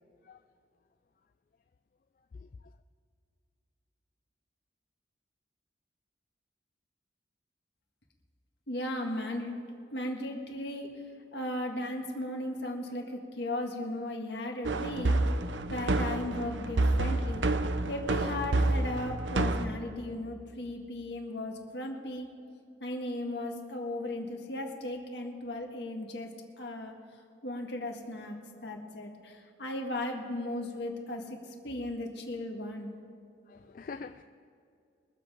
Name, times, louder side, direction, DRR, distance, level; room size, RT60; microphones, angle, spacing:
voice 1, 8.7-9.6 9.9-11.0 11.3-15.2 15.7-17.4 17.9-22.3 22.8-26.9 27.4-28.4 28.6-33.0, left 1 dB, 70° left, 2 dB, 1.8 m, -36 dB
sound 1, 14.6-19.7, right 2 dB, 85° right, 0.7 m, -28 dB
voice 2, 33.5-34.2, left 4 dB, 50° left, 9 dB, 0.3 m, -44 dB
23.0 x 7.6 x 5.0 m, 2.5 s
head